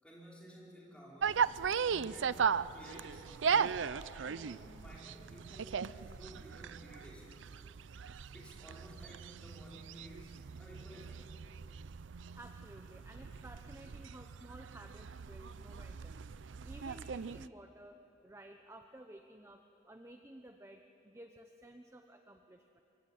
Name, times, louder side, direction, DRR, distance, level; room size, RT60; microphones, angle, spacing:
voice 1, 0.0-3.8 4.2-7.5 8.3-11.3, right 1 dB, 5° left, -4 dB, 4.9 m, -54 dB
sound 1, 1.2-17.5, right 6 dB, 80° right, 0.5 m, -38 dB
voice 2, 12.4-16.2 16.6-22.8, right 1 dB, 15° right, 5 dB, 0.9 m, -54 dB
24.0 x 23.0 x 9.1 m, 2.9 s
head